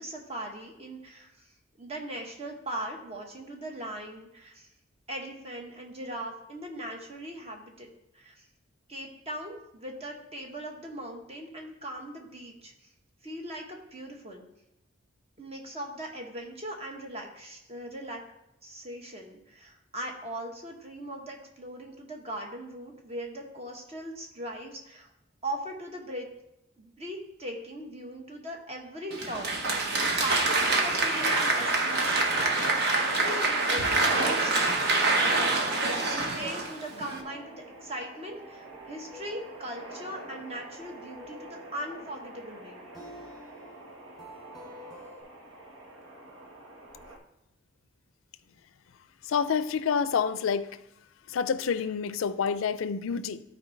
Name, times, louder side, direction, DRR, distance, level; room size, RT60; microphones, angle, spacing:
voice 1, 0.0-4.7 5.1-7.9 8.1-8.5 8.9-12.9 13.2-14.5 15.4-18.2 18.6-25.1 25.4-26.3 26.8-42.8, right 1 dB, 30° right, 1 dB, 1.2 m, -40 dB
Applause, 29.1-37.2, right 2 dB, 55° right, 1.0 m, -26 dB
sound 1, 31.4-47.2, right 2 dB, 80° right, 1.2 m, -42 dB
sound 2, 35.2-45.2, equal, ahead, 2.2 m, -51 dB
voice 2, 49.2-50.7 51.3-53.4, left 6 dB, 90° left, 14 dB, 0.4 m, -28 dB
12.5 x 4.6 x 3.2 m, 0.88 s
head